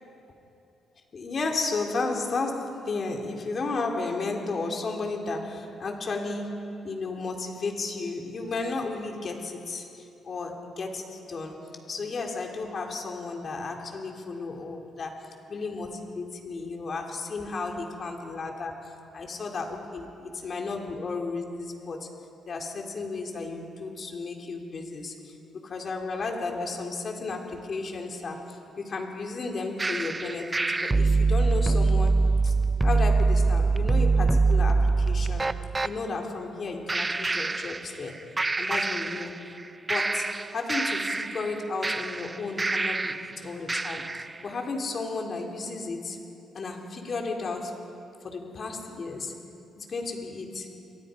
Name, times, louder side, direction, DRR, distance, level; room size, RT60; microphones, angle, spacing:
voice 1, 1.1-18.7 19.1-22.2 22.5-25.4 25.6-32.5 32.8-35.5 35.8-38.3 38.6-39.5 39.9-46.2 46.5-47.9 48.2-49.4 49.8-50.7, left 3 dB, 45° left, 2 dB, 3.6 m, -33 dB
sound 1, 29.8-35.9 36.9-38.1 38.4-39.6 39.9-43.3 43.7-44.3, right 3 dB, 20° right, 0.7 m, -24 dB
29.0 x 23.0 x 5.3 m, 2.8 s
cardioid pair, 90°, 0 cm